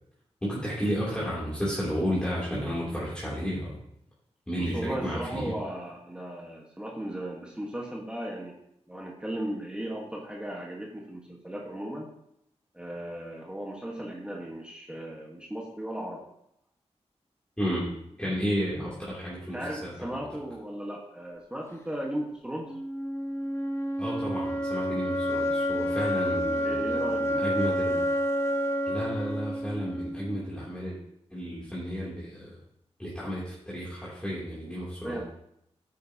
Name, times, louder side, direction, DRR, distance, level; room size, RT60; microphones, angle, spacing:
voice 1, 0.4-3.8 4.5-5.5 17.6-17.9 18.2-20.2 24.0-28.0 28.9-31.0 31.3-32.6 33.0-35.2, equal, 10° left, -8 dB, 3.0 m, -32 dB
voice 2, 4.6-8.6 8.9-12.1 12.7-16.3 19.5-22.7 26.6-27.9 35.0-35.2, right 1 dB, 10° right, -2 dB, 1.4 m, -36 dB
sound 1, 22.6-30.6, equal, 25° left, 1.3 m, -29 dB
10.5 x 9.5 x 2.9 m, 0.76 s
wide cardioid pair, 115°, 11 cm